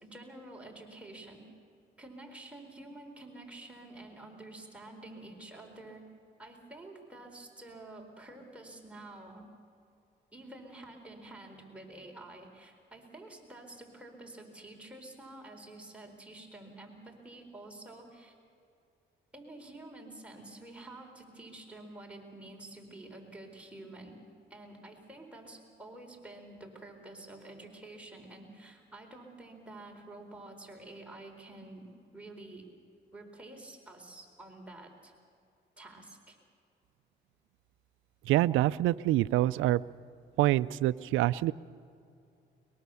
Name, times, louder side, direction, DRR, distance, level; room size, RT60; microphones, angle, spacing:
voice 1, 0.0-1.4 2.0-6.0 6.4-9.4 10.3-18.4 19.3-24.2 24.5-32.7 33.1-35.1 35.8-36.4, right 2 dB, 5° right, 0 dB, 4.3 m, -49 dB
voice 2, 38.3-39.8 40.4-41.5, right 15 dB, 90° right, 14 dB, 0.4 m, -26 dB
22.5 x 22.0 x 7.0 m, 2.5 s
cardioid pair, 90°, 20 cm